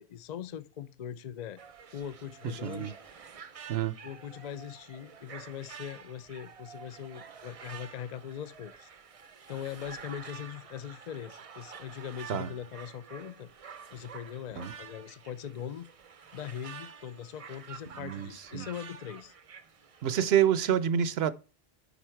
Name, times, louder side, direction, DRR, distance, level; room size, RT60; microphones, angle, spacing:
voice 1, 0.0-1.6 1.9-3.0 4.0-8.9 9.5-13.5 13.9-15.9 16.3-19.3, left 9 dB, 55° left, 0.5 m, -41 dB
sound 1, 1.6-20.5, right 6 dB, 40° right, 0.5 m, -49 dB
voice 2, 18.0-18.3 18.5-18.7 20.0-21.3, right 9 dB, 75° right, 0.8 m, -27 dB
8.2 x 5.2 x 4.5 m
omnidirectional pair, 1.1 m